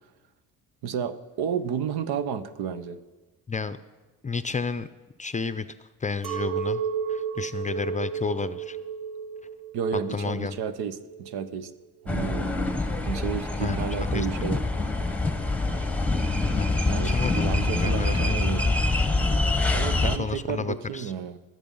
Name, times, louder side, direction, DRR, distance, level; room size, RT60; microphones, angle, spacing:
voice 1, 0.8-3.0 9.7-11.7 12.0-12.5 13.1-14.6 16.9-18.7 19.7-21.4, right 7 dB, 80° right, 13 dB, 1.0 m, -31 dB
voice 2, 4.2-4.9 5.2-6.8 7.1-8.8 9.9-10.6 13.6-14.3 16.5-18.2 20.0-21.1, left 5 dB, 20° left, 12 dB, 0.5 m, -31 dB
Chink clink, 6.2-11.7, right 7 dB, 60° right, 0.9 m, -33 dB
sound 1, 12.1-20.2, left 2 dB, 5° left, 1.0 m, -25 dB
21.0 x 7.9 x 5.5 m, 1.2 s
cardioid pair, 95°, 37 cm